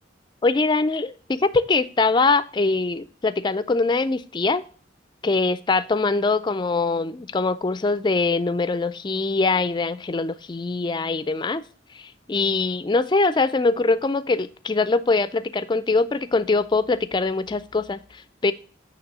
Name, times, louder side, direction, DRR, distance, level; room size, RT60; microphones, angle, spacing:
voice 1, 0.4-4.6 5.2-11.6 11.9-18.5, left 3 dB, 25° left, 14 dB, 0.3 m, -23 dB
8.7 x 3.1 x 5.4 m, 0.40 s
head